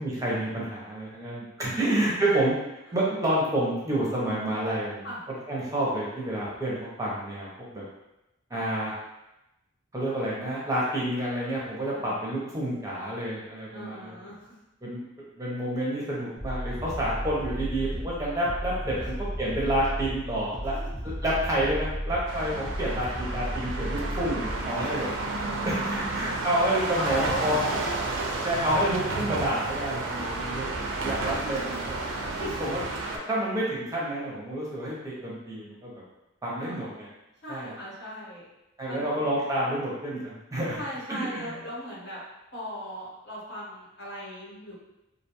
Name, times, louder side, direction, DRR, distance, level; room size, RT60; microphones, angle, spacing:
voice 1, 0.0-2.5 2.9-5.1 5.5-7.5 7.7-7.8 8.5-8.9 9.9-14.1 14.8-15.0 15.3-20.7 21.2-25.1 25.6-27.6 28.4-30.7 31.0-32.0 32.6-32.8 33.3-35.9 36.4-37.1 37.5-37.7 38.8-40.8 41.1-41.5, right 1 dB, 15° right, -6 dB, 0.5 m, -29 dB
voice 2, 1.7-2.4 2.9-3.0 5.0-5.2 8.5-8.6 11.9-12.5 13.7-14.6 19.0-19.1 24.8-25.0 25.5-25.6 26.9-27.6 28.2-28.5 29.9-30.6 31.6-31.7 32.3-32.8 36.6-37.0 37.4-38.5 38.9-39.3 40.7-42.2 42.5-44.7, equal, 55° left, -6 dB, 0.8 m, -39 dB
sound 1, 16.4-24.7, equal, 15° left, 0.8 m, -34 dB
sound 2, 22.3-33.2, right 2 dB, 75° right, 0.4 m, -31 dB
2.4 x 2.2 x 2.8 m, 0.94 s
head